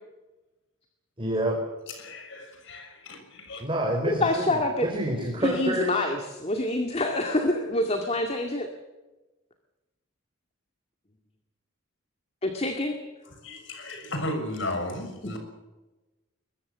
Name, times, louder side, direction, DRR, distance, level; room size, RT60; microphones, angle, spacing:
voice 1, 1.2-1.6 3.6-5.9, right 1 dB, 25° right, 0 dB, 4.3 m, -28 dB
voice 2, 1.9-3.6 13.4-15.4, left 1 dB, 60° left, 6 dB, 6.4 m, -34 dB
voice 3, 4.0-4.9 5.4-8.7 12.4-13.0, left 1 dB, 30° left, 4 dB, 2.2 m, -26 dB
22.0 x 21.5 x 7.5 m, 1.1 s
head